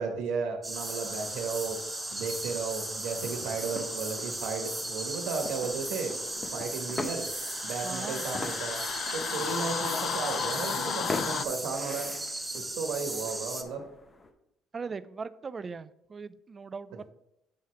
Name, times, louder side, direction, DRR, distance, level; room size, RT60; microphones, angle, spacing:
voice 1, 0.0-1.8 2.1-6.1 6.5-7.3 7.6-8.8 9.1-12.1 12.7-13.8, right 5 dB, 90° right, 4 dB, 1.2 m, -34 dB
sound 1, 0.6-13.6, right 2 dB, 10° right, 0.8 m, -36 dB
sound 2, 0.7-11.5, left 8 dB, 55° left, 0.4 m, -38 dB
sound 3, 3.1-14.3, left 2 dB, 25° left, 0.8 m, -43 dB
voice 2, 7.8-8.3 14.7-17.0, right 5 dB, 30° right, 15 dB, 0.3 m, -39 dB
8.4 x 3.2 x 5.7 m, 0.80 s
cardioid pair, 115°, 0 cm